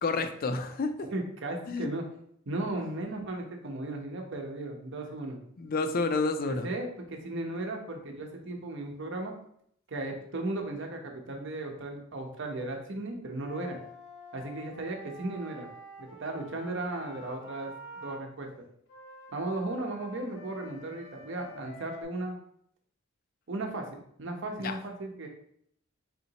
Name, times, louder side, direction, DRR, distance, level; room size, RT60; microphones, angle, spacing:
voice 1, 0.0-0.9 1.7-1.9 5.6-6.7 24.6-24.8, left 3 dB, 45° left, 9 dB, 0.4 m, -29 dB
voice 2, 1.1-2.1 2.5-5.4 6.4-9.3 9.9-13.8 14.3-15.7 16.0-17.7 18.0-18.5 19.3-22.3 23.5-25.3, right 2 dB, 65° right, 3 dB, 0.8 m, -36 dB
Wind instrument woodwind instrument, 13.4-18.2 18.9-22.0, equal, 85° left, 1.2 m, -48 dB
4.2 x 3.9 x 2.8 m, 0.68 s
head